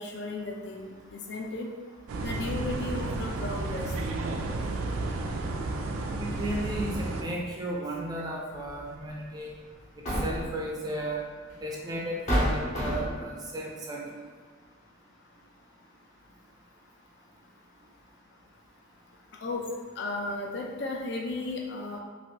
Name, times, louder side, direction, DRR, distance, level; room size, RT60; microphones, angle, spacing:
voice 1, 0.0-1.7 2.2-3.9 19.4-19.7 20.0-22.0, left 2 dB, 55° left, 0 dB, 0.4 m, -34 dB
sound 1, 2.1-7.2, right 2 dB, 90° right, 0.3 m, -32 dB
voice 2, 6.2-9.5 10.2-11.2 11.6-14.2, right 1 dB, 20° right, -2 dB, 0.4 m, -34 dB
sound 2, 8.7-8.8 9.8-10.6 11.6-11.7 12.3-13.3, equal, 35° left, 0.8 m, -28 dB
3.2 x 2.5 x 2.8 m, 1.5 s
head